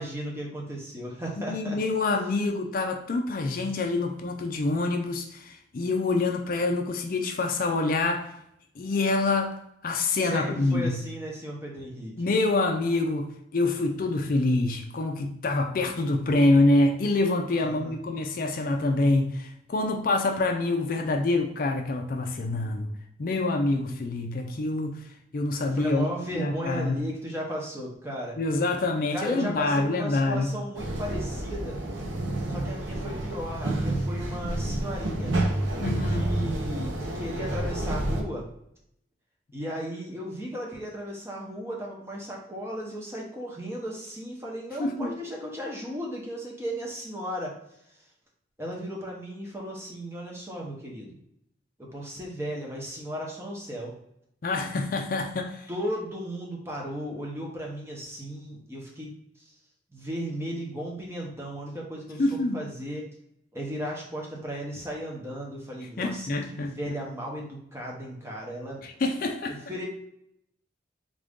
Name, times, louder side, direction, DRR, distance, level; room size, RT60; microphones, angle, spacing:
voice 1, 0.0-1.8 10.1-12.2 17.6-18.0 25.7-28.4 29.1-31.8 32.5-35.3 36.1-38.5 39.5-47.6 48.6-51.2 51.8-54.0 55.7-59.5 59.9-63.1 63.5-68.8 69.5-69.9, equal, 15° right, 0.8 m, -35 dB
voice 2, 1.4-8.3 8.8-11.0 12.2-22.9 23.2-26.1 26.3-27.0 28.4-30.5 35.8-36.3 44.8-45.1 54.4-55.7 62.2-62.6 66.0-66.8 68.8-69.6, left 2 dB, 45° left, 0.4 m, -26 dB
sound 1, 30.7-38.2, right 1 dB, 80° right, 0.7 m, -29 dB
3.7 x 2.5 x 3.5 m
head